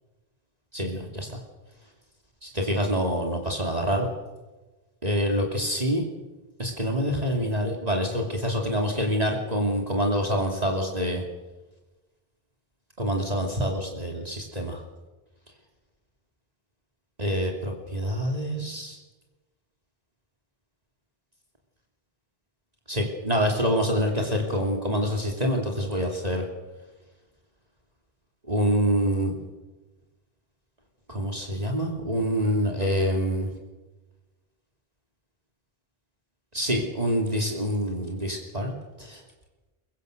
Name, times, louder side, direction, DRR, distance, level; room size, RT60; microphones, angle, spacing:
voice 1, 0.7-1.4 2.4-4.1 5.0-6.0 6.6-11.2 13.0-14.8 17.2-19.0 22.9-26.4 28.5-29.3 31.1-33.5 36.5-38.7 39.0-39.2, equal, 40° right, 1 dB, 2.9 m, -26 dB
23.5 x 23.0 x 6.6 m, 1.2 s
omnidirectional pair, 1.1 m